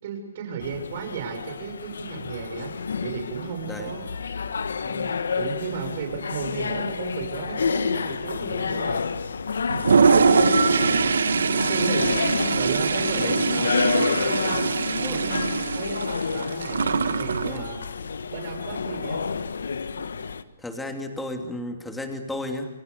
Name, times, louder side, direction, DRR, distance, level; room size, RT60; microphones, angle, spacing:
voice 1, 0.0-2.7 3.0-4.1 4.8-9.0 10.6-10.8 11.3-12.1 12.5-13.8 14.2-14.7 15.1-15.4 15.7-16.8 17.1-17.8 18.3-19.3, right 6 dB, 45° right, 5 dB, 6.8 m, -34 dB
sound 1, 0.6-20.4, left 5 dB, 90° left, 1.5 m, -29 dB
voice 2, 3.7-4.0 13.2-13.3 15.0-15.2 17.4-17.7 20.6-22.7, left 1 dB, 5° left, 4 dB, 2.9 m, -33 dB
Toilet flush, 9.7-17.6, right 5 dB, 90° right, 1.7 m, -22 dB
29.5 x 24.5 x 6.9 m, 0.93 s
hypercardioid pair, 160°, 0 cm